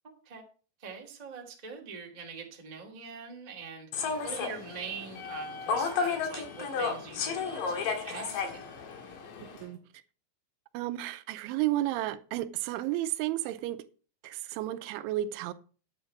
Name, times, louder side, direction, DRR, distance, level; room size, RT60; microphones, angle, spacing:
voice 1, 0.8-8.6, right 5 dB, 45° right, 0.5 m, -43 dB
Human voice / Subway metro underground, 3.9-9.6, left 5 dB, 60° left, 2.8 m, -33 dB
voice 2, 10.7-13.8 14.2-15.5, right 14 dB, 85° right, 3.1 m, -32 dB
9.7 x 8.8 x 4.6 m
omnidirectional pair, 5.5 m